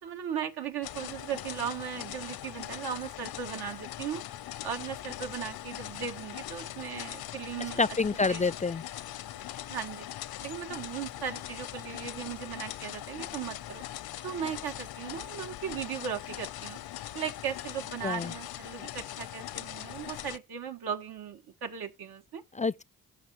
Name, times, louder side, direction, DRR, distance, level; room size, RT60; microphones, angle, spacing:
voice 1, 0.0-4.2 4.6-7.8 8.3-8.5 9.7-10.1 10.4-13.8 14.2-16.8 17.1-22.4, right 8 dB, 80° right, 1.9 m, -37 dB
sound 1, 0.8-20.4, left 13 dB, 75° left, 0.7 m, -41 dB
voice 2, 7.8-8.8 18.0-18.3 22.5-22.8, left 3 dB, 20° left, 0.4 m, -27 dB
15.0 x 6.5 x 3.1 m
supercardioid pair, 50°, 36 cm